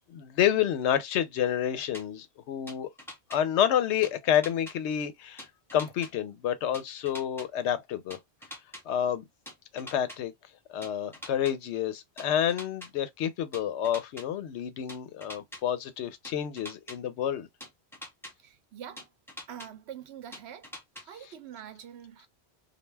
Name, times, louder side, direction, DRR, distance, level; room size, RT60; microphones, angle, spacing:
voice 1, 0.1-2.9 3.3-5.5 5.7-8.2 8.9-9.2 9.7-10.3 10.7-17.5, left 10 dB, 85° left, 0.9 m, -29 dB
sound 1, 1.9-2.0 2.7-3.4 4.0-4.8 5.4-6.1 6.7-7.5 8.1-8.8 9.5-10.2 10.8-11.5 12.2-12.9 13.5-14.3 14.9-15.6 16.2-17.0 17.6-18.3 19.0-19.7 20.3-21.0, left 1 dB, 5° left, 0.6 m, -43 dB
voice 2, 18.4-19.1 19.5-20.7 21.0-22.3, right 9 dB, 75° right, 0.8 m, -45 dB
2.3 x 2.2 x 3.2 m
omnidirectional pair, 1.1 m